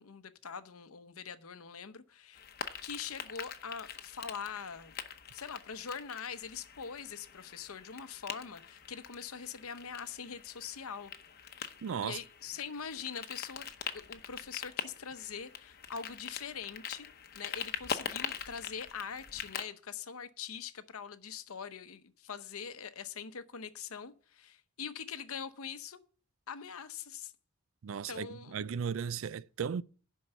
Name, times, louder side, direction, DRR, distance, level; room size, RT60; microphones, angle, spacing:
voice 1, 0.0-2.4 2.8-4.9 5.3-11.1 12.0-17.1 17.3-26.0 26.5-27.3 28.1-28.7, left 6 dB, 80° left, 0.8 m, -43 dB
sound 1, 2.3-19.6, left 7 dB, 45° left, 0.8 m, -44 dB
voice 2, 11.8-12.2 27.8-29.8, right 7 dB, 65° right, 0.4 m, -36 dB
11.0 x 4.6 x 7.9 m
head